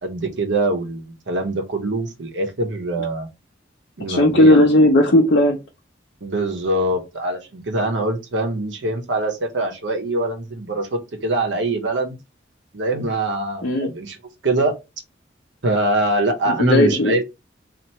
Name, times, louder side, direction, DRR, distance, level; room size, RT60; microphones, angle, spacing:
voice 1, 0.0-3.3 4.0-4.7 6.2-12.2 12.7-14.2 14.4-14.7 15.6-17.2, right 2 dB, 75° right, 0.9 m, -23 dB
voice 2, 4.1-5.6 13.6-13.9 16.5-17.2, left 1 dB, 70° left, 0.7 m, -15 dB
2.9 x 2.5 x 4.3 m
head